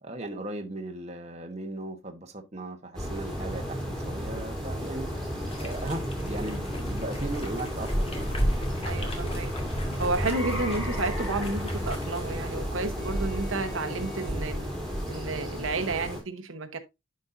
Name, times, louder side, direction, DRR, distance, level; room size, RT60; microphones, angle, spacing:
voice 1, 0.0-5.1 5.6-8.5, right 1 dB, 30° right, 1.0 m, -37 dB
sound 1, 2.9-16.2, equal, 5° left, 3.2 m, -33 dB
sound 2, 5.4-12.3, equal, 30° left, 1.6 m, -35 dB
voice 2, 8.8-9.5 10.0-14.7 15.1-16.8, right 3 dB, 80° right, 1.0 m, -31 dB
sound 3, 9.2-10.0 10.4-11.3 11.7-12.6 13.0-14.3, left 3 dB, 50° left, 3.8 m, -49 dB
11.0 x 5.3 x 2.6 m
head